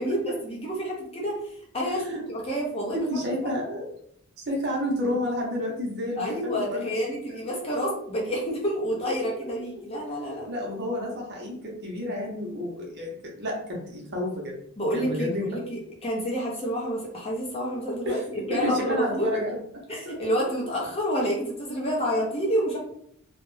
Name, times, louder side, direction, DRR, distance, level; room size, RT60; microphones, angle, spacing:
voice 1, 0.0-3.0 3.4-3.5 6.2-10.5 14.8-19.3 19.9-22.8, equal, 25° left, -3 dB, 0.6 m, -29 dB
voice 2, 2.9-3.9 4.5-7.4 10.5-13.5 13.9-14.6 14.9-15.6 18.0-18.2 18.5-19.6 20.1-20.2, left 1 dB, 50° right, -1 dB, 0.7 m, -30 dB
2.2 x 2.1 x 3.1 m, 0.67 s
head